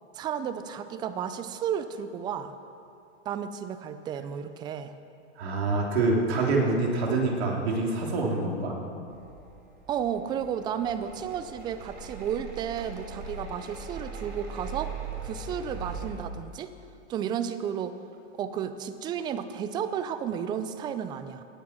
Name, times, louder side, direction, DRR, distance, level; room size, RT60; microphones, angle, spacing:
voice 1, 0.1-2.5 3.3-4.9 9.9-15.0 15.2-16.7 17.1-18.0 18.4-21.4, right 8 dB, 15° right, 11 dB, 0.4 m, -32 dB
voice 2, 5.4-8.7, right 3 dB, 60° right, -1 dB, 3.5 m, -26 dB
sound 1, 9.1-16.1, right 4 dB, 30° right, 3.1 m, -40 dB
17.5 x 9.2 x 6.1 m, 2.6 s
hypercardioid pair, 135°, 35 cm